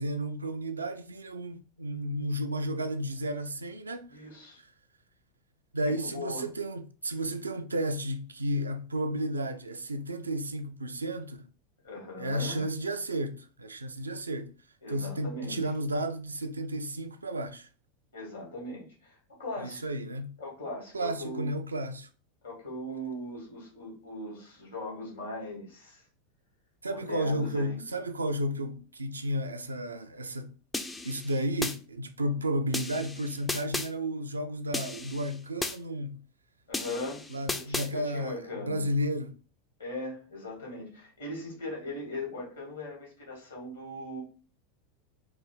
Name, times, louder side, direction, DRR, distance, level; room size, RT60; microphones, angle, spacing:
voice 1, 0.0-4.2 5.7-11.5 12.2-14.5 14.9-17.7 19.6-20.4 20.9-22.1 26.8-30.5 31.0-36.2 37.3-39.4, right 1 dB, 80° right, 0.5 m, -32 dB
voice 2, 4.1-4.6 6.0-6.5 11.8-12.7 14.8-15.6 18.1-19.8 20.4-21.5 22.4-26.0 26.9-27.8 36.7-37.3 37.5-38.9 39.8-44.2, left 1 dB, 70° left, 2.3 m, -39 dB
sound 1, 30.7-31.8 32.7-33.9 34.7-35.8 36.7-37.9, left 2 dB, 10° left, 0.5 m, -35 dB
4.6 x 2.6 x 3.8 m
figure-of-eight pair, 85°, 0 cm